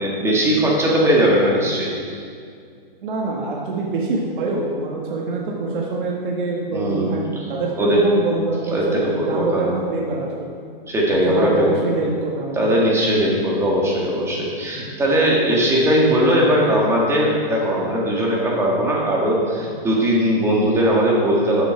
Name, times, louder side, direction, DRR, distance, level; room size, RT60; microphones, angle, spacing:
voice 1, 0.0-2.2 6.7-7.2 7.8-8.0 8.7-9.7 10.9-11.7 12.6-21.7, equal, 10° right, -4 dB, 1.8 m, -19 dB
voice 2, 3.0-7.2 7.5-10.5 11.2-12.7, right 3 dB, 55° right, -2 dB, 1.7 m, -25 dB
12.5 x 7.0 x 4.5 m, 2.2 s
hypercardioid pair, 150°, 29 cm